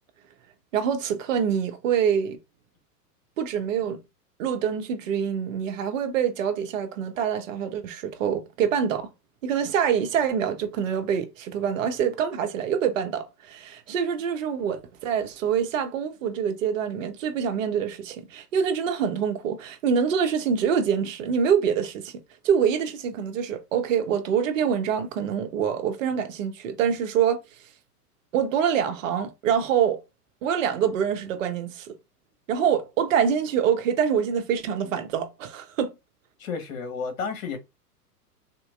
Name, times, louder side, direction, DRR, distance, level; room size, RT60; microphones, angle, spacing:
voice 1, 0.7-2.4 3.4-4.0 4.4-9.1 9.4-22.1 22.4-27.4 28.3-30.0 30.4-31.9 32.5-35.9, right 8 dB, 55° right, 0.9 m, -25 dB
voice 2, 36.4-37.6, left 5 dB, 55° left, 1.3 m, -31 dB
3.6 x 2.8 x 2.4 m
figure-of-eight pair, 105°, 47 cm